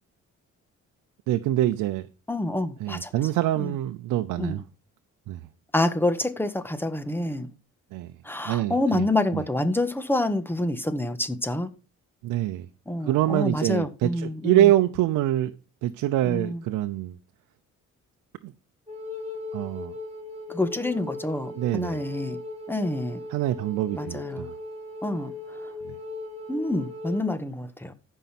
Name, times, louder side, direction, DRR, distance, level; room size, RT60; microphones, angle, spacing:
voice 1, 1.3-2.1 2.8-4.6 5.3-5.4 7.9-8.1 8.4-9.1 9.3-9.4 12.2-12.7 13.0-15.5 15.8-17.2 18.4-18.5 19.5-19.9 21.5-22.0 23.3-24.5 25.8-25.9, right 14 dB, 90° right, 0.7 m, -25 dB
voice 2, 2.3-3.1 3.6-3.7 4.4-4.6 5.7-7.5 8.2-11.7 12.9-14.7 16.3-16.6 20.5-22.4 22.7-23.2 23.9-24.5 25.0-25.3 26.5-27.9, left 1 dB, 5° left, 1.6 m, -27 dB
Wind instrument woodwind instrument, 18.9-27.3, left 3 dB, 20° right, 5.2 m, -38 dB
15.0 x 5.6 x 5.9 m
cardioid pair, 90°, 30 cm